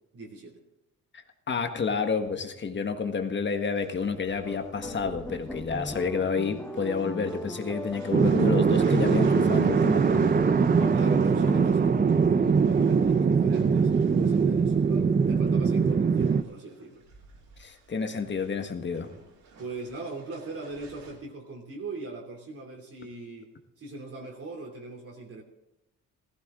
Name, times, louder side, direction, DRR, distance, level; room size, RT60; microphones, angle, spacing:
voice 1, 0.1-0.6 10.9-17.0 19.6-23.5 23.8-25.4, right 3 dB, 50° right, -1 dB, 2.9 m, -40 dB
voice 2, 1.5-10.4 17.6-19.1, left 5 dB, 40° left, 7 dB, 1.6 m, -30 dB
sound 1, 3.7-21.1, right 3 dB, 80° right, 5.2 m, -51 dB
sound 2, 4.4-11.7, left 1 dB, 5° left, 1.1 m, -37 dB
sound 3, 8.1-16.4, right 5 dB, 30° right, 0.7 m, -22 dB
15.5 x 15.0 x 3.8 m, 0.93 s
cardioid pair, 90°, 30 cm